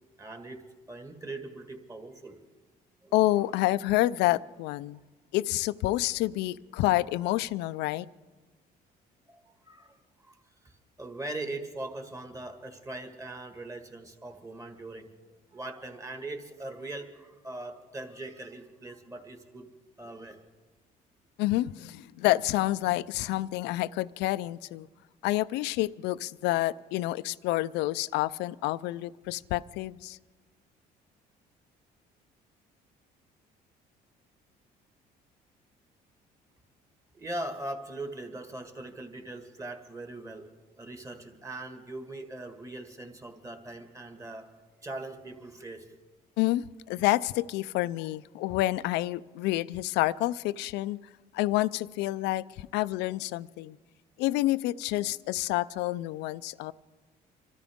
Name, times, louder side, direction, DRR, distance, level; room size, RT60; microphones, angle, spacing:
voice 1, 0.2-0.6 0.9-2.4 3.0-3.1 3.4-3.5 9.3-10.4 10.6-10.7 11.0-15.1 15.5-19.7 20.0-20.4 37.1-40.5 40.8-44.5 44.8-45.9, right 2 dB, 20° right, 5 dB, 1.7 m, -40 dB
voice 2, 3.1-5.0 5.3-8.1 21.4-24.9 25.2-30.2 46.4-51.0 51.3-53.8 54.2-56.7, left 17 dB, 90° left, 16 dB, 0.4 m, -28 dB
26.0 x 13.5 x 3.6 m, 1.3 s
cardioid pair, 110°, 17 cm